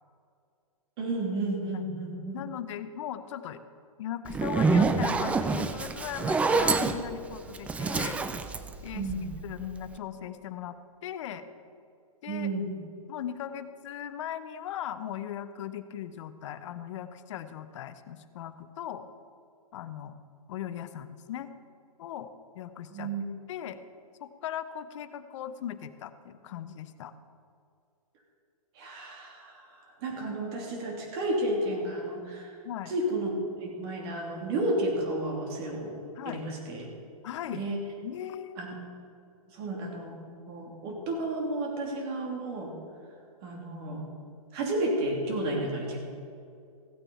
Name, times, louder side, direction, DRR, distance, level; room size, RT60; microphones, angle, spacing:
voice 1, 1.0-2.4 8.9-9.3 12.3-12.7 22.9-23.2 28.7-29.7 30.0-32.5 32.9-33.3 33.6-36.0 36.2-36.9 37.5-37.8 38.6-38.7 39.5-40.1 40.5-42.7 43.4-44.0 44.5-46.0, right 1 dB, 40° right, 0 dB, 3.0 m, -32 dB
voice 2, 2.3-3.6 4.0-8.2 8.8-9.1 9.4-10.8 11.0-11.4 12.2-12.5 13.1-19.1 19.7-20.2 20.5-21.5 22.0-22.3 22.5-23.1 23.5-23.8 24.2-27.1 32.6-32.9 36.2-36.4 37.2-37.7 38.0-38.6 45.5-45.7, left 10 dB, 55° left, 12 dB, 0.8 m, -38 dB
Zipper (clothing), 4.3-9.5, right 4 dB, 5° right, 0.3 m, -27 dB
15.5 x 8.9 x 4.2 m, 2.4 s
hypercardioid pair, 130°, 19 cm